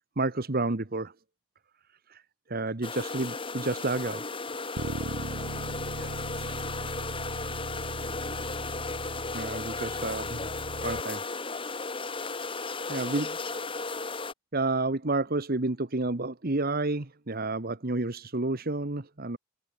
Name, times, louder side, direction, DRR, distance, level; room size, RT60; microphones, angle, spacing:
voice 1, 0.2-1.1 2.1-2.2 2.5-4.2 9.3-10.5 10.8-11.2 12.9-13.4 14.5-19.4, right 2 dB, 45° right, 1.3 m, -30 dB
sound 1, 2.8-14.3, left 3 dB, 25° left, 2.0 m, -35 dB
Bass guitar, 4.8-11.0, right 2 dB, 85° right, 1.4 m, -38 dB
voice 2, 5.9-7.3 12.5-13.1 13.5-13.8, right 4 dB, 70° right, 5.0 m, -54 dB
head